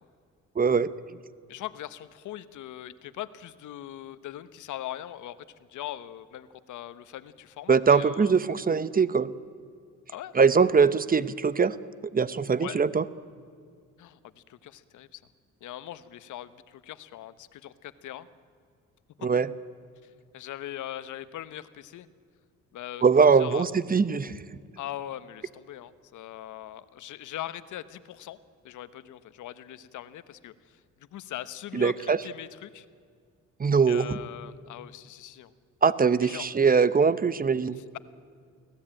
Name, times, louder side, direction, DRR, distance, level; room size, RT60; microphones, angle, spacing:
voice 1, 0.6-0.9 7.7-9.3 10.3-11.8 12.1-13.0 19.2-19.5 23.0-24.4 31.7-32.2 33.6-34.2 35.8-37.8, right 5 dB, 30° right, 16 dB, 0.8 m, -22 dB
voice 2, 1.5-8.4 10.1-10.3 12.6-12.8 14.0-15.2 15.6-18.3 20.0-22.1 22.7-23.0 23.3-23.7 24.8-28.4 28.6-30.8 31.1-31.9 32.2-32.9 33.9-35.5 36.2-36.5 37.8-38.0, left 12 dB, 75° left, 14 dB, 1.1 m, -41 dB
24.0 x 17.5 x 8.9 m, 2.2 s
cardioid pair, 90°, 30 cm